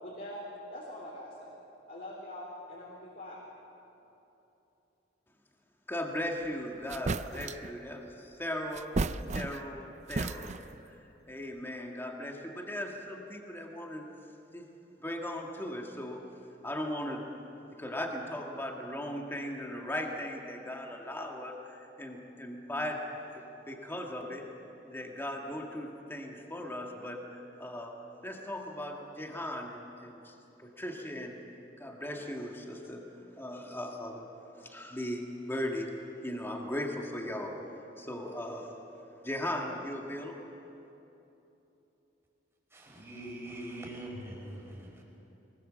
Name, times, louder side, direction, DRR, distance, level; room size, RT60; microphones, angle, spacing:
voice 1, 0.0-0.4 0.7-1.5 1.9-3.4, left 1 dB, 55° left, -5 dB, 4.0 m, -43 dB
voice 2, 5.9-9.0 9.3-10.5 10.9-11.0 11.3-14.1 14.5-14.7 15.0-16.3 16.6-17.3 17.8-24.4 24.8-30.3 30.6-31.4 31.8-33.0 33.4-34.3 34.6-35.9 36.2-37.6 38.0-38.7 39.2-40.5, left 1 dB, 15° left, 1 dB, 1.8 m, -38 dB
sound 1, 6.4-6.5 6.9-7.7 8.7-9.8 10.1-10.8, right 3 dB, 40° right, 0.5 m, -34 dB
voice 3, 42.7-45.0, right 1 dB, 15° right, -2 dB, 5.0 m, -43 dB
23.0 x 20.5 x 7.5 m, 3.0 s
head